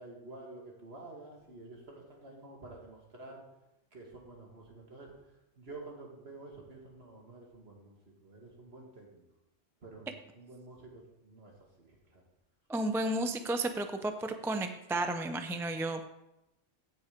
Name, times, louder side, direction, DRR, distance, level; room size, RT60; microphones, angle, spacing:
voice 1, 0.0-3.4 3.9-9.2 9.8-12.2, right 2 dB, 60° right, -1 dB, 2.5 m, -50 dB
voice 2, 12.7-16.0, right 2 dB, 5° right, 7 dB, 0.5 m, -32 dB
16.0 x 5.6 x 5.2 m, 0.91 s
omnidirectional pair, 1.2 m